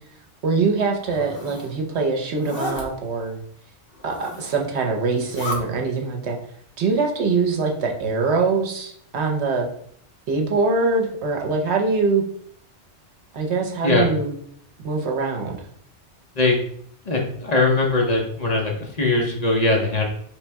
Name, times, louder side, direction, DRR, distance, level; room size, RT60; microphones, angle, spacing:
voice 1, 0.4-3.4 4.0-6.4 6.8-9.7 10.3-12.2 13.3-14.3 14.8-15.6, right 4 dB, 70° right, 2 dB, 1.0 m, -23 dB
Zipper (clothing), 0.9-1.7 2.3-2.8 3.9-4.7 5.1-5.6, left 2 dB, 55° left, 1.2 m, -33 dB
voice 2, 17.1-20.0, left 2 dB, 40° left, -1 dB, 0.7 m, -20 dB
3.4 x 3.1 x 4.5 m, 0.65 s
omnidirectional pair, 1.2 m